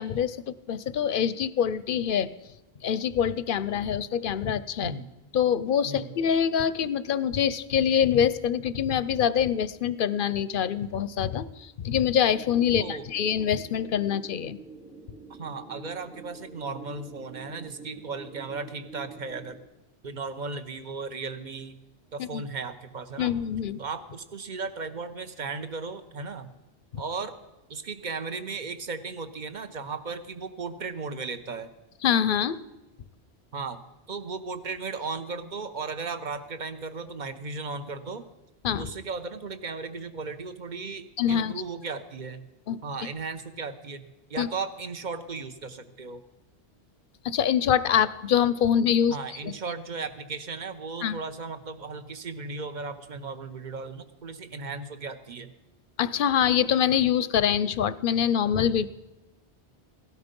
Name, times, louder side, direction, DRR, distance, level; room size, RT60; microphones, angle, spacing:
voice 1, 0.0-2.3 2.8-4.9 5.3-14.6 22.2-22.4 23.2-23.8 32.0-32.6 38.6-38.9 41.2-41.5 42.7-42.8 44.4-44.5 47.2-49.2 49.4-49.5 51.0-51.2 56.0-58.9, left 8 dB, 60° left, 16 dB, 0.7 m, -25 dB
voice 2, 4.8-5.1 5.8-6.2 12.8-13.0 15.3-19.6 20.0-21.8 22.1-23.3 23.8-26.5 27.0-27.3 27.7-31.7 33.5-33.8 34.1-38.3 38.8-42.5 42.8-46.2 49.1-55.5, right 4 dB, 45° right, 10 dB, 1.0 m, -36 dB
sound 1, 12.3-19.6, right 3 dB, 10° right, 0.6 m, -47 dB
17.0 x 12.5 x 5.3 m, 1.0 s
omnidirectional pair, 1.1 m